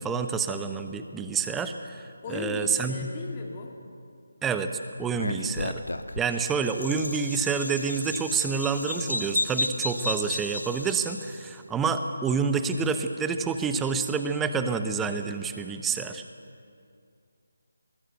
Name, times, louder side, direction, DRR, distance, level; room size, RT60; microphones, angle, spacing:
voice 1, 0.0-3.1 4.4-4.7 5.0-5.8 6.2-16.2, right 5 dB, 10° right, 8 dB, 0.9 m, -28 dB
voice 2, 2.2-3.7, left 3 dB, 30° left, 1 dB, 3.0 m, -36 dB
Bird vocalization bird call bird song, 5.1-11.4, left 1 dB, 85° left, 1.4 m, -33 dB
22.5 x 19.5 x 7.9 m, 2.4 s
figure-of-eight pair, 155°, 0 cm